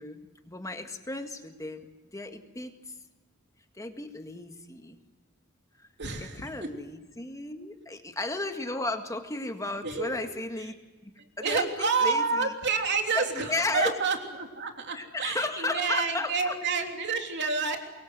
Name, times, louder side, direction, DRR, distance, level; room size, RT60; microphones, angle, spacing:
voice 1, 0.0-3.0 3.8-5.0 5.8-5.9 6.2-10.7 11.0-11.1 11.4-12.5 13.1-14.0 14.9-16.6, left 2 dB, 15° left, 6 dB, 1.9 m, -34 dB
sound 1, 6.0-6.5, left 1 dB, 70° left, 2.5 m, -45 dB
voice 2, 6.0-6.5 9.8-10.3 11.2-17.8, right 5 dB, 55° right, 3 dB, 3.4 m, -29 dB
24.5 x 22.5 x 7.8 m, 1.2 s
head